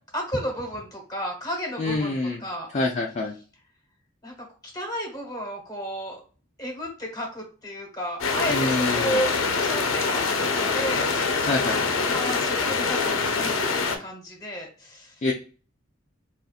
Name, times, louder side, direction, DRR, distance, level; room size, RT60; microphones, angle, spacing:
voice 1, 0.1-2.7 4.2-4.3 4.6-6.2 6.6-9.3 9.6-10.4 10.7-11.5 12.0-15.1, equal, 20° left, 0 dB, 1.2 m, -33 dB
voice 2, 1.8-2.4 2.7-3.3 8.5-9.2 11.4-11.8 15.2-15.3, left 2 dB, 35° left, 0 dB, 0.4 m, -26 dB
sound 1, 8.2-14.0, left 4 dB, 90° left, 0.6 m, -24 dB
3.9 x 2.5 x 2.4 m, 0.37 s
head